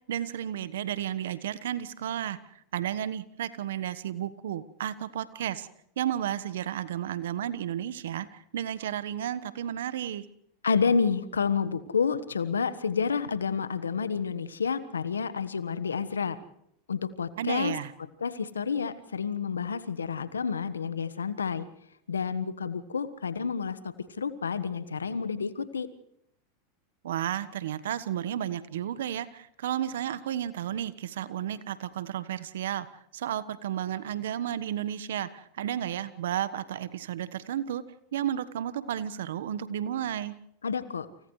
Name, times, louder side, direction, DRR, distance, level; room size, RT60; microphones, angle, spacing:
voice 1, 0.1-2.4 2.7-5.7 6.0-10.2 17.4-17.9 27.0-32.9 33.1-37.8 38.1-40.3, right 10 dB, 75° right, 15 dB, 1.2 m, -32 dB
voice 2, 10.6-16.4 16.9-17.7 18.2-21.6 22.1-23.8 24.2-25.9 40.6-41.1, left 6 dB, 90° left, 13 dB, 1.4 m, -29 dB
30.0 x 28.0 x 3.2 m, 0.75 s
hypercardioid pair, 95°, 0 cm